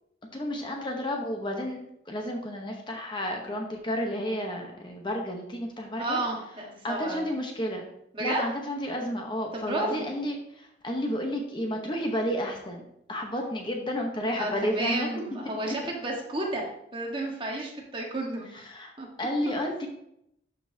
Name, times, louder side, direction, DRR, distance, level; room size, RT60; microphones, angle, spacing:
voice 1, 0.3-6.2 6.8-7.9 8.2-12.8 13.1-15.4 15.7-15.8 18.5-18.9 19.2-19.9, equal, 25° left, 2 dB, 0.9 m, -31 dB
voice 2, 6.0-7.2 8.1-8.4 9.5-10.1 14.4-16.6 16.9-18.6 19.0-19.1, right 2 dB, 30° right, -1 dB, 1.4 m, -32 dB
12.0 x 5.4 x 2.8 m, 0.77 s
head